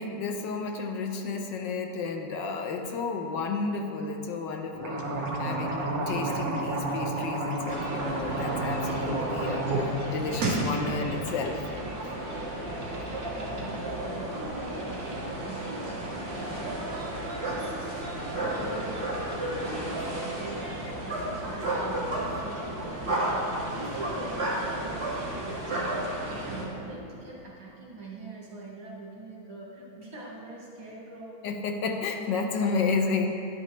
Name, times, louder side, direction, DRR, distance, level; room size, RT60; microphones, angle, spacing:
voice 1, 0.0-5.1 5.4-11.6 31.4-33.3, left 4 dB, 70° left, 4 dB, 1.3 m, -31 dB
sound 1, 4.7-9.8 10.1-10.7, right 2 dB, 50° right, 1.5 m, -30 dB
sound 2, 7.7-26.6, right 1 dB, 35° right, 1.8 m, -33 dB
voice 2, 13.0-31.4, right 2 dB, 85° right, -5 dB, 2.8 m, -43 dB
11.0 x 11.0 x 3.1 m, 2.8 s
omnidirectional pair, 2.2 m